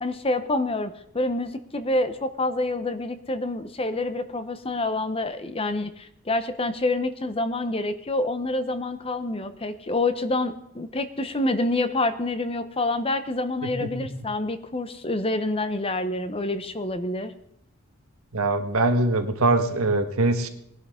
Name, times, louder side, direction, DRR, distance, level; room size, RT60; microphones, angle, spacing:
voice 1, 0.0-17.3, left 2 dB, 25° left, 10 dB, 0.8 m, -27 dB
voice 2, 13.6-13.9 18.3-20.5, right 2 dB, 75° right, 7 dB, 1.5 m, -23 dB
19.5 x 11.5 x 3.7 m, 0.73 s
head